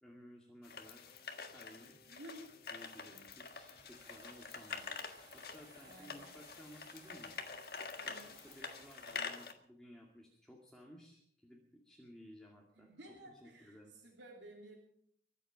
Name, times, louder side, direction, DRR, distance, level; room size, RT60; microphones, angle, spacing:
voice 1, 0.0-1.2 1.5-1.9 2.7-5.0 5.3-7.4 8.0-12.9 13.3-13.9, equal, 5° left, -2 dB, 2.3 m, -57 dB
sound 1, 0.6-9.5, left 5 dB, 55° left, 1.7 m, -47 dB
sound 2, 1.0-4.7 5.2-5.6, left 1 dB, 30° left, 3.6 m, -71 dB
voice 2, 2.1-2.6 5.8-6.3 8.0-8.4 12.7-14.8, right 1 dB, 85° right, 0 dB, 3.0 m, -54 dB
sound 3, 2.8-9.2, right 3 dB, 25° right, 1.6 m, -63 dB
24.0 x 8.3 x 6.1 m, 0.66 s
head